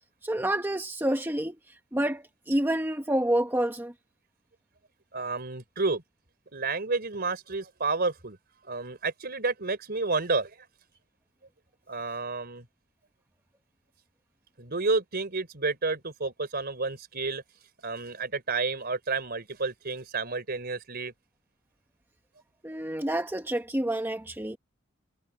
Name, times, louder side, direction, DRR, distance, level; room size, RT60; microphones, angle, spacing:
voice 1, 0.2-3.9 22.6-24.6, right 1 dB, 10° right, 1.1 m, -28 dB
voice 2, 5.1-6.0 6.5-8.4 8.6-10.7 11.9-12.7 14.6-17.4 17.8-21.1, right 3 dB, 50° right, 4.0 m, -30 dB
head